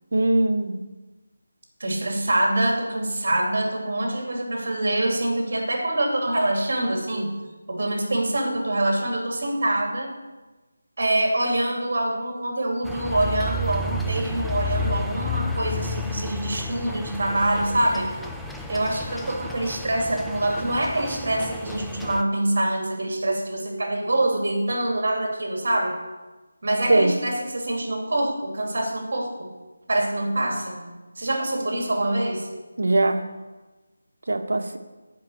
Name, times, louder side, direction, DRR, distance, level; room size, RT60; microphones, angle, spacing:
voice 1, 0.1-0.8 26.9-27.1 32.8-33.2 34.3-34.8, right 2 dB, 70° right, 7 dB, 1.2 m, -21 dB
voice 2, 1.8-7.3 7.7-10.1 11.0-18.1 18.7-26.0 26.6-29.5 29.9-30.8 31.2-32.5, right 1 dB, 55° right, 1 dB, 2.8 m, -25 dB
sound 1, 12.8-22.2, left 2 dB, ahead, 0.3 m, -32 dB
8.3 x 5.7 x 8.0 m, 1.2 s
figure-of-eight pair, 170°, 0 cm